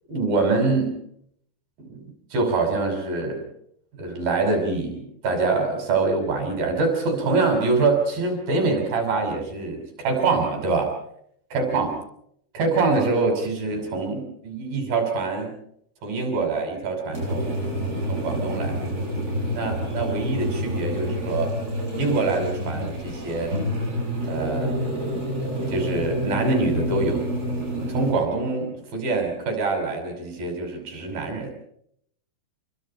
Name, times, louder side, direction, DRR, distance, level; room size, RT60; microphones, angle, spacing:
voice 1, 0.1-0.9 1.8-3.5 4.0-10.9 11.5-11.9 12.5-15.5 16.0-17.6 18.1-18.8 19.5-21.6 21.9-23.6 24.2-24.7 25.7-27.3 27.8-31.5, right 3 dB, 60° right, 4 dB, 8.0 m, -25 dB
sound 1, 17.1-28.1, equal, 20° right, 7.8 m, -28 dB
29.0 x 24.5 x 4.4 m, 0.69 s
omnidirectional pair, 4.8 m